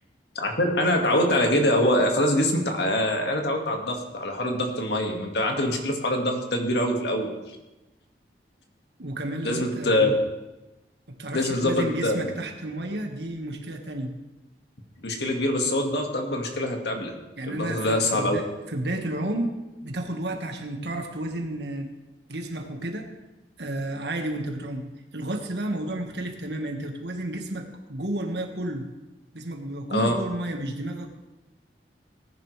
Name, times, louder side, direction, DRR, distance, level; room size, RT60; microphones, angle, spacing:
voice 1, 0.4-7.3 9.4-10.1 11.3-12.3 15.0-17.1 17.5-18.4 29.9-30.1, left 1 dB, 75° left, 2 dB, 1.9 m, -24 dB
voice 2, 9.0-10.1 11.1-14.1 17.4-19.6 19.8-21.9 22.3-23.1 23.6-24.9 25.1-28.9 29.3-31.1, right 1 dB, 75° right, 3 dB, 1.6 m, -31 dB
19.0 x 10.5 x 3.3 m, 1.0 s
head